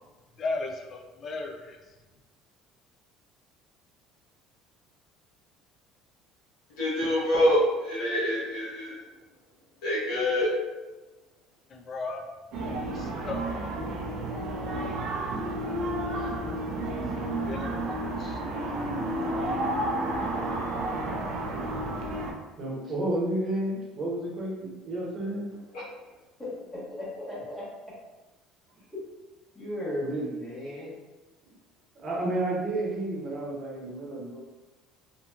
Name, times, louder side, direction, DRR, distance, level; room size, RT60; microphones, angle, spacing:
voice 1, 0.4-1.8 11.7-12.2 12.9-13.4 17.5-18.4, left 3 dB, 35° left, 3 dB, 0.3 m, -35 dB
voice 2, 6.8-9.0 9.8-10.5, left 1 dB, 90° left, -9 dB, 0.9 m, -25 dB
sound 1, 12.5-22.3, right 1 dB, 55° right, 0.4 m, -31 dB
voice 3, 22.6-25.5 30.0-30.3 31.9-34.4, right 1 dB, 30° right, -4 dB, 0.8 m, -31 dB
voice 4, 26.4-27.6 29.5-30.9, left 1 dB, 5° left, -11 dB, 1.1 m, -36 dB
2.8 x 2.5 x 2.3 m, 1.1 s
cardioid pair, 145°, 0 cm